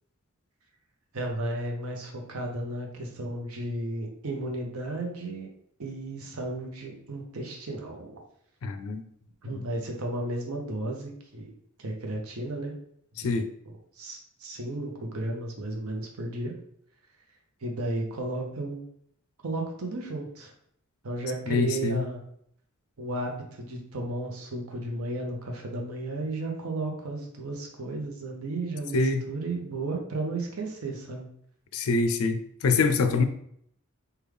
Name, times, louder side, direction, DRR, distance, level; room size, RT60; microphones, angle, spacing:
voice 1, 1.1-5.5 5.8-8.1 9.4-11.5 11.8-12.7 13.2-13.4 14.0-16.5 17.6-18.8 19.4-20.5 21.0-22.2 23.0-29.0 29.3-31.3 33.0-33.2, right 2 dB, 80° right, 1 dB, 0.8 m, -34 dB
voice 2, 8.6-9.0 13.2-13.5 21.5-22.0 28.9-29.2 31.7-33.2, left 4 dB, 75° left, 8 dB, 0.4 m, -25 dB
3.4 x 2.3 x 3.3 m, 0.68 s
head